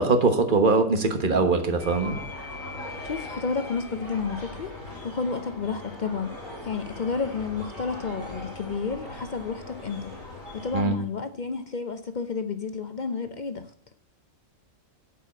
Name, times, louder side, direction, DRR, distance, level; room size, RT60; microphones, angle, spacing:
voice 1, 0.0-2.2 10.7-11.0, right 3 dB, 40° right, 6 dB, 1.4 m, -22 dB
sound 1, 1.8-10.8, left 2 dB, 25° left, 3.9 m, -39 dB
voice 2, 3.0-4.7 5.0-6.3 6.6-10.1 10.5-13.7, left 5 dB, 55° left, 9 dB, 0.5 m, -31 dB
8.4 x 5.6 x 7.2 m, 0.62 s
omnidirectional pair, 1.4 m